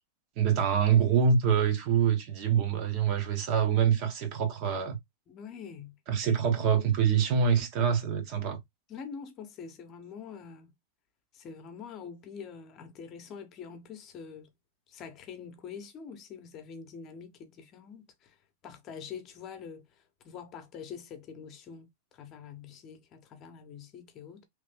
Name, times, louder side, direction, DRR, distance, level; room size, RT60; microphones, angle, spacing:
voice 1, 0.4-5.0 6.1-8.6, right 7 dB, 45° right, 1.1 m, -25 dB
voice 2, 5.3-6.0 8.9-10.7 11.3-14.5 14.9-18.4 18.6-19.9 20.2-21.9 22.1-24.4, left 6 dB, 35° left, 0.9 m, -45 dB
3.1 x 2.6 x 3.4 m
supercardioid pair, 145°, 0 cm